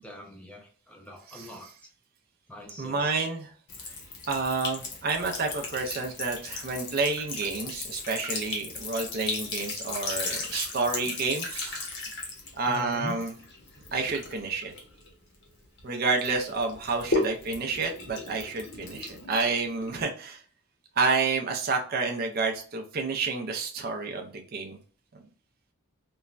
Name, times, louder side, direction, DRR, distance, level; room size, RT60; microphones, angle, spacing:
voice 1, 0.0-1.7 2.5-3.1 12.7-13.2, equal, 5° left, 0 dB, 0.5 m, -42 dB
voice 2, 1.3-1.7 2.8-3.5 4.3-11.8 12.6-13.3 13.9-14.7 15.8-20.4 21.0-24.8, right 4 dB, 45° right, 3 dB, 0.4 m, -29 dB
Sink (filling or washing) / Trickle dribble, 3.7-15.8 16.2-20.0, left 3 dB, 50° left, 0.8 m, -36 dB
3.0 x 2.2 x 2.4 m, 0.44 s
head